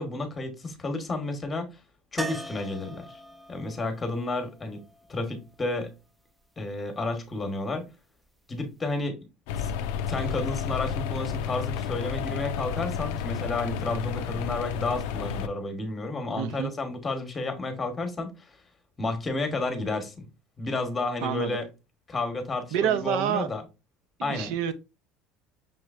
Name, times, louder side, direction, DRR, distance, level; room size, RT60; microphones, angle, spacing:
voice 1, 0.0-1.8 2.1-3.2 3.5-4.8 5.1-5.9 6.6-7.8 8.5-9.2 9.6-9.7 10.1-18.6 19.0-20.2 20.6-21.7 22.1-23.6 24.2-24.5, left 2 dB, 15° left, 1.0 m, -31 dB
sound 1, 2.2-6.1 8.7-8.8 9.1-9.2, right 2 dB, 5° right, 0.4 m, -41 dB
sound 2, 9.5-15.5, left 7 dB, 85° left, 0.4 m, -31 dB
voice 2, 16.4-16.7 21.2-21.6 22.7-23.5 24.2-24.7, right 9 dB, 75° right, 0.6 m, -27 dB
5.7 x 3.1 x 2.4 m
cardioid pair, 135°, 0 cm